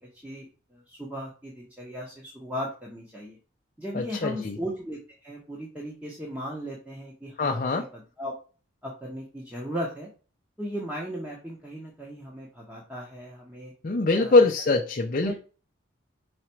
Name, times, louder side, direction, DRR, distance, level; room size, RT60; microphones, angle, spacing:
voice 1, 0.0-3.4 3.8-8.3 8.8-10.1 10.6-13.7 14.1-14.5 15.2-15.3, equal, 10° right, -3 dB, 1.1 m, -37 dB
voice 2, 3.9-4.6 7.4-7.8 13.8-15.3, left 3 dB, 40° left, 3 dB, 0.5 m, -23 dB
4.9 x 4.3 x 4.5 m, 0.36 s
head